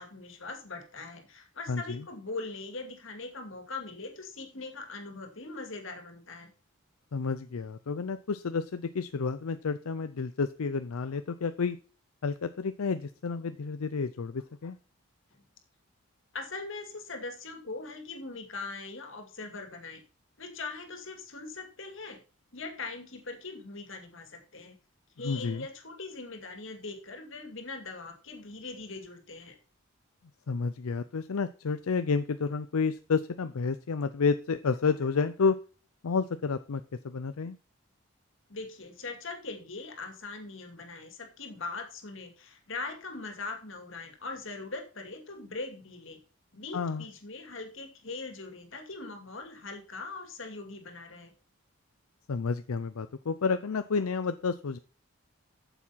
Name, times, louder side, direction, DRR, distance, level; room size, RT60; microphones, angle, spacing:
voice 1, 0.0-6.5 15.3-15.4 16.3-20.0 20.4-22.2 22.5-24.8 25.2-29.6 38.5-46.2 46.5-51.3, left 3 dB, 65° left, 4 dB, 2.4 m, -41 dB
voice 2, 1.7-2.0 7.1-11.8 12.2-14.8 25.2-25.7 30.5-35.6 36.0-37.6 46.7-47.0 52.3-54.8, left 5 dB, 85° left, 11 dB, 0.5 m, -30 dB
8.5 x 7.1 x 5.7 m, 0.37 s
head